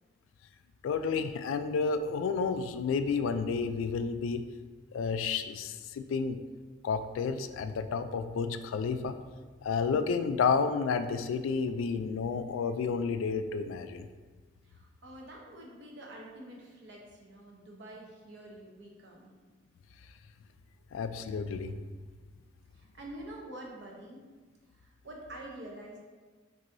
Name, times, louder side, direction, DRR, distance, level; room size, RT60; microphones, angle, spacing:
voice 1, 0.8-4.4 4.9-6.4 6.8-9.2 9.6-14.1 20.9-21.7, left 5 dB, 90° left, 11 dB, 0.3 m, -31 dB
voice 2, 14.6-19.3 22.7-24.2 24.7-26.0, right 1 dB, 65° right, -1 dB, 0.8 m, -47 dB
6.0 x 2.7 x 2.6 m, 1.4 s
head